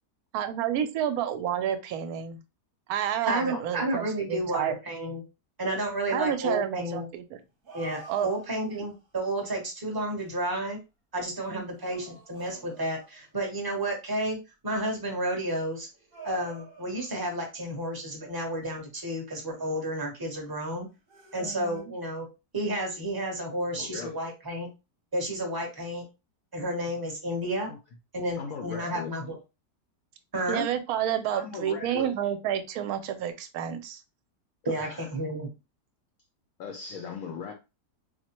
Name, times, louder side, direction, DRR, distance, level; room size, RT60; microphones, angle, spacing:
voice 1, 0.3-2.4 2.9-4.8 6.1-7.4 8.1-8.3 11.5-11.6 21.4-21.8 30.5-34.0, right 10 dB, 70° right, 1.0 m, -30 dB
voice 2, 3.3-5.2 5.6-7.1 7.7-10.8 11.1-14.4 14.6-15.9 16.2-20.9 21.3-22.3 22.5-24.7 25.1-26.0 26.5-27.7 28.1-29.4 30.3-30.7 34.6-35.5, right 1 dB, 20° right, 0.7 m, -31 dB
sound 1, 7.4-9.1 10.0-10.6 11.5-13.4 15.2-17.7 19.3-20.1 21.1-21.8, right 3 dB, 40° right, 1.0 m, -50 dB
voice 3, 23.7-24.2 27.7-27.8 28.4-29.4 31.3-32.1 34.7-35.1 36.6-37.5, left 6 dB, 70° left, 0.8 m, -39 dB
4.2 x 2.1 x 2.9 m
omnidirectional pair, 1.8 m